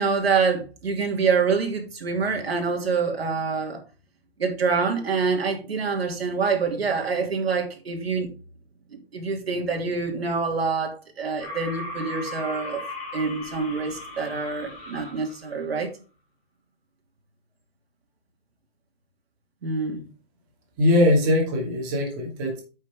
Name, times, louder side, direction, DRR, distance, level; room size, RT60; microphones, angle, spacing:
voice 1, 0.0-3.8 4.4-8.3 8.9-12.8 13.1-15.9 19.6-20.0, right 5 dB, 80° right, 2.9 m, -26 dB
sound 1, 11.4-15.6, left 1 dB, 20° left, 3.3 m, -37 dB
voice 2, 20.8-22.6, left 1 dB, 20° right, 2.6 m, -21 dB
9.3 x 6.4 x 3.7 m
hypercardioid pair, 175°, 30 cm